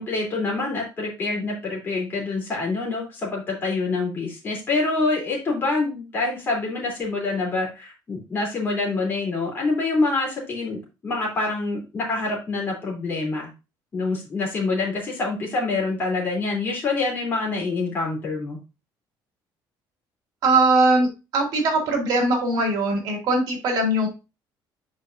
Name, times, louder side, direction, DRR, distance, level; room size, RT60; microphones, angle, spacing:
voice 1, 0.0-13.5 13.9-18.6, left 3 dB, 25° left, -3 dB, 3.1 m, -26 dB
voice 2, 20.4-24.1, right 2 dB, 55° right, 1 dB, 2.3 m, -21 dB
8.8 x 4.7 x 2.6 m, 0.28 s
cardioid pair, 175°, 8 cm